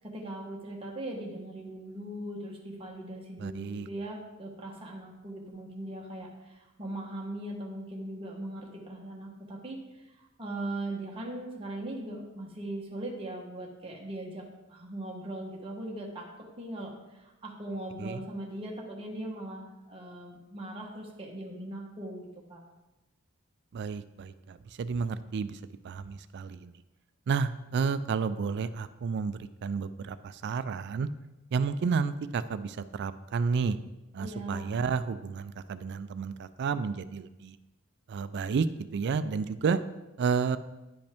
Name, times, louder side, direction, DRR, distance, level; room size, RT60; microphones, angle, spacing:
voice 1, 0.0-10.0 10.4-22.6 34.2-34.7, right 1 dB, 25° right, -2 dB, 1.1 m, -39 dB
voice 2, 3.4-3.9 18.0-18.2 23.7-25.6 25.8-26.7 27.3-31.1 31.5-33.8 34.1-37.6 38.1-38.7 38.9-39.8 40.2-40.6, right 5 dB, 55° right, 14 dB, 0.3 m, -31 dB
10.5 x 5.2 x 3.5 m, 1.0 s
head